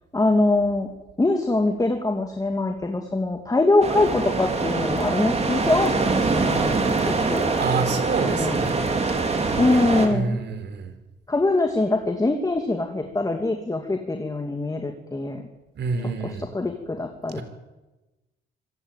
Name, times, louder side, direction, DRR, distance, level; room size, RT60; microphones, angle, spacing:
voice 1, 0.1-0.9 1.2-6.7 7.1-7.5 8.2-8.6 9.6-10.4 11.3-15.4 16.2-17.4, left 2 dB, 20° left, 4 dB, 2.6 m, -23 dB
sound 1, 3.8-10.1, right 3 dB, 35° right, 4.1 m, -24 dB
voice 2, 7.6-9.0 9.2-9.7 10.1-11.0 15.8-16.5 17.3-17.4, right 4 dB, 60° right, 9 dB, 4.1 m, -28 dB
25.5 x 16.0 x 9.1 m, 1.1 s
cardioid pair, 90°, 20 cm